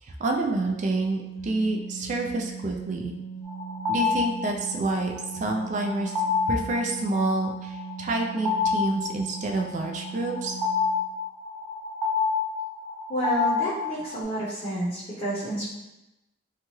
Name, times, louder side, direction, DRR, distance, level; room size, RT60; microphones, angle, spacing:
voice 1, 0.0-3.1 3.9-6.1 6.5-10.6, right 2 dB, 40° right, 1 dB, 0.3 m, -28 dB
Organ, 0.6-11.2, right 6 dB, 90° left, 0.9 m, -39 dB
sound 1, 3.5-14.2, left 5 dB, 10° right, 0.7 m, -29 dB
voice 2, 13.1-15.7, right 1 dB, 30° left, -8 dB, 0.7 m, -29 dB
2.8 x 2.2 x 3.0 m, 0.98 s
head